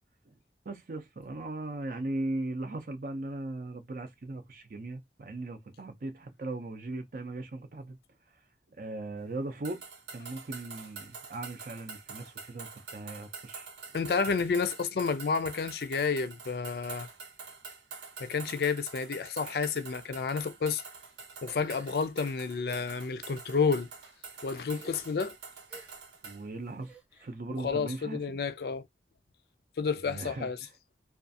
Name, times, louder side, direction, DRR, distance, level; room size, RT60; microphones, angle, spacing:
voice 1, 0.7-8.0 8.8-9.8 10.1-13.7 26.2-26.9 27.2-28.4 30.1-30.5, right 2 dB, 50° right, 0.5 m, -38 dB
sound 1, 9.6-26.4, right 5 dB, 90° right, 0.7 m, -46 dB
voice 2, 13.9-17.1 18.2-20.8 21.4-23.9 24.4-25.4 27.6-28.9 29.8-30.7, left 5 dB, 60° left, 0.4 m, -30 dB
sound 2, 21.5-22.8 23.5-23.8 24.7-25.2 25.7-26.1 26.8-27.4, right 3 dB, 5° right, 0.7 m, -53 dB
2.4 x 2.3 x 2.5 m
head